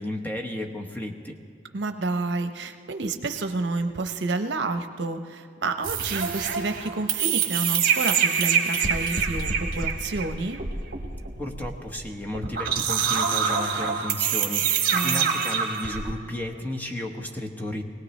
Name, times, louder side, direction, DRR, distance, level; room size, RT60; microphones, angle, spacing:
voice 1, 0.0-1.3 11.4-17.8, left 1 dB, 10° left, 1 dB, 1.1 m, -33 dB
voice 2, 1.7-10.6 14.9-15.4, right 3 dB, 75° right, 8 dB, 0.8 m, -29 dB
sound 1, 5.8-16.1, right 6 dB, 55° right, 1.5 m, -26 dB
21.0 x 17.5 x 3.2 m, 2.2 s
head